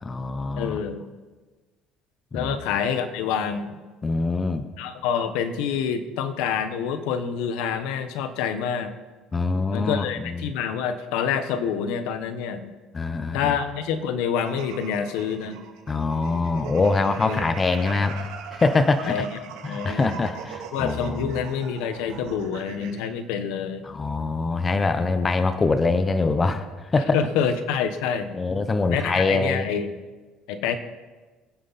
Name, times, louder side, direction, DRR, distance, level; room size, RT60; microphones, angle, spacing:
voice 1, 0.0-0.8 2.3-2.6 4.0-4.7 9.3-10.5 12.9-13.5 15.9-19.3 19.6-21.5 23.8-27.2 28.3-29.7, left 3 dB, 20° left, 10 dB, 0.7 m, -24 dB
voice 2, 0.5-1.0 2.3-3.8 4.8-8.9 9.7-12.7 13.3-15.6 17.2-17.4 19.0-19.3 19.7-20.2 20.7-23.8 27.1-28.4 28.9-29.9 30.5-30.8, left 7 dB, 80° left, 10 dB, 1.2 m, -27 dB
sound 1, 14.4-23.1, right 7 dB, 90° right, 2.4 m, -39 dB
23.5 x 10.0 x 4.2 m, 1.3 s
cardioid pair, 150°, 0 cm